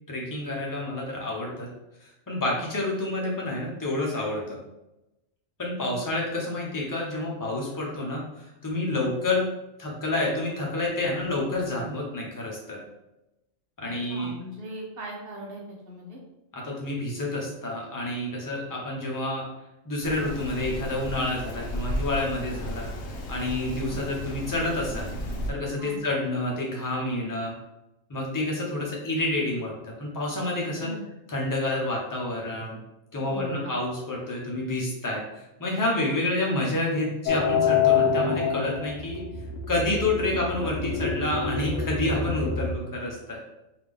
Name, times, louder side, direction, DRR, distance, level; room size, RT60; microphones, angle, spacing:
voice 1, 0.1-1.7 2.0-4.6 5.6-9.5 9.8-12.8 13.8-14.3 16.5-19.4 19.8-22.9 23.3-27.5 28.1-30.9 31.3-32.8 33.1-39.2 39.7-43.4, left 2 dB, 20° left, -3 dB, 0.7 m, -29 dB
voice 2, 5.7-6.1 8.9-9.1 14.1-16.2 23.9-24.0 25.8-26.0 30.8-31.0 33.2-33.7 36.1-36.2, equal, 55° right, -2 dB, 0.9 m, -39 dB
Rain, 20.0-25.5, equal, 65° left, 0.9 m, -34 dB
sound 1, 37.3-42.8, left 6 dB, 90° left, 1.0 m, -26 dB
3.5 x 2.7 x 3.5 m, 0.94 s
omnidirectional pair, 1.3 m